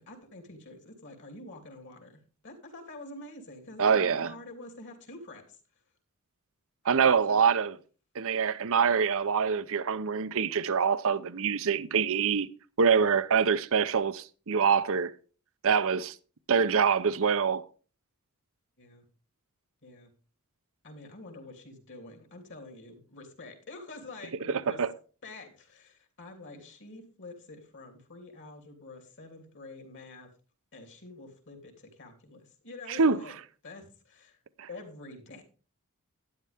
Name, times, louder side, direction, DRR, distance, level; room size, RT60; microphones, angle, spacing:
voice 1, 0.0-5.6 7.3-7.4 18.8-19.0 19.8-20.1 20.8-24.8 25.2-30.3 30.7-33.3 33.6-34.4 34.7-35.4, left 2 dB, 55° left, 3.0 m, -47 dB
voice 2, 3.8-4.3 6.8-7.8 8.1-12.5 12.8-15.1 15.6-16.2 16.5-17.6 24.5-24.9 33.0-33.2 34.6-34.7, right 6 dB, 65° right, 0.7 m, -25 dB
12.0 x 10.5 x 3.5 m
head